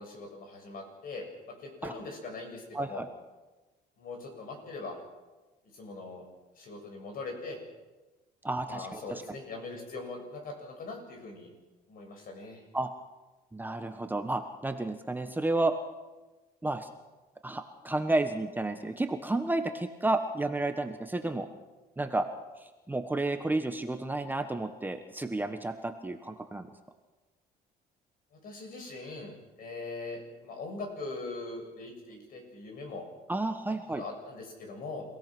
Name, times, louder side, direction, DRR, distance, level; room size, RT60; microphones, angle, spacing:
voice 1, 0.0-3.0 4.0-5.0 5.7-6.2 6.6-7.6 8.7-11.5 11.9-12.6 28.4-29.3 29.6-33.0 33.7-35.1, left 3 dB, 55° left, 3 dB, 7.2 m, -41 dB
voice 2, 2.7-3.1 8.4-9.2 12.7-12.9 13.5-15.7 16.6-16.9 17.4-21.5 22.0-22.2 22.9-26.7 33.3-34.0, right 2 dB, 10° right, 7 dB, 1.4 m, -31 dB
28.5 x 17.0 x 6.3 m, 1.2 s
cardioid pair, 110°, 17 cm